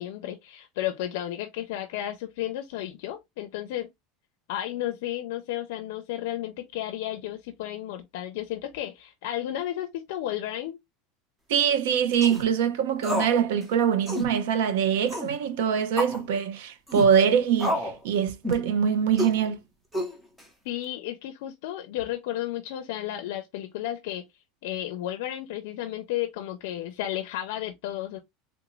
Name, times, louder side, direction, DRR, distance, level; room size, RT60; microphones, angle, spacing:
voice 1, 0.0-3.9 4.5-10.8 20.6-24.3 24.6-28.2, left 13 dB, 70° left, 0.5 m, -33 dB
voice 2, 11.5-19.6, right 8 dB, 80° right, 0.6 m, -23 dB
sound 1, 12.1-12.5 13.0-13.4 13.6-13.7 14.1-14.3 15.1-15.3 16.0-16.2 16.9-17.1 17.6-18.0 18.4-18.7 19.2-19.4 19.9-20.4, left 1 dB, 5° right, 0.7 m, -29 dB
3.5 x 2.5 x 3.0 m
supercardioid pair, 165°, 0 cm